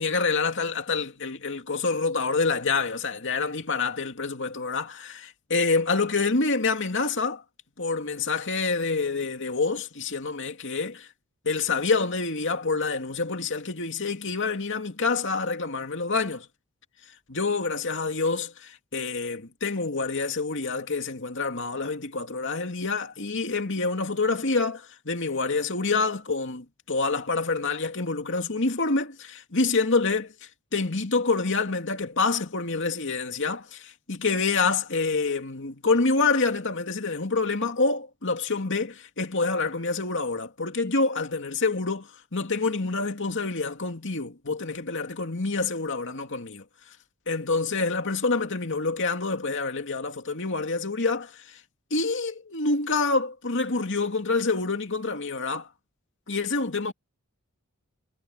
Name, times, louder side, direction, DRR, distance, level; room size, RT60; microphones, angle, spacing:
voice 1, 0.0-7.4 7.8-11.1 11.4-16.5 17.3-46.6 47.3-51.6 51.9-55.7 56.3-56.9, left 4 dB, 60° left, 2.6 m, -27 dB
head